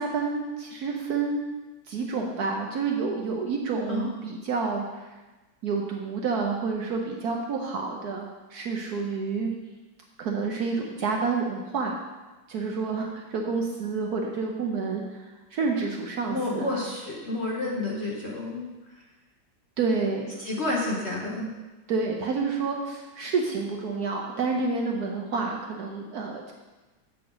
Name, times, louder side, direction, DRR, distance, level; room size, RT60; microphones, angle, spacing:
voice 1, 0.0-1.4 1.9-4.8 5.6-9.5 10.2-12.0 12.5-15.2 15.5-16.8 19.8-20.3 21.9-26.5, right 4 dB, 65° right, 1 dB, 1.1 m, -29 dB
voice 2, 16.3-18.7 20.4-21.5, left 2 dB, 45° left, -3 dB, 1.0 m, -30 dB
7.7 x 7.5 x 3.9 m, 1.2 s
omnidirectional pair, 2.1 m